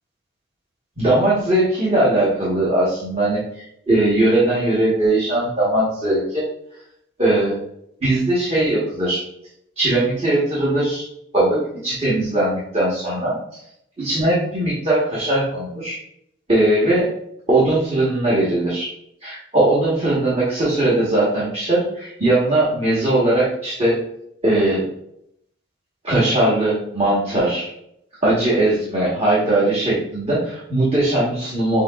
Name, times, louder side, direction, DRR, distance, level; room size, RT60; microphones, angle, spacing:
voice 1, 1.0-6.4 7.2-7.6 8.0-9.2 9.8-11.0 11.3-13.4 14.0-16.0 16.5-17.1 17.5-18.9 19.2-24.0 24.4-24.8 26.0-27.7 28.2-31.8, right 1 dB, 30° right, -8 dB, 1.2 m, -19 dB
6.6 x 2.9 x 2.3 m, 0.73 s
head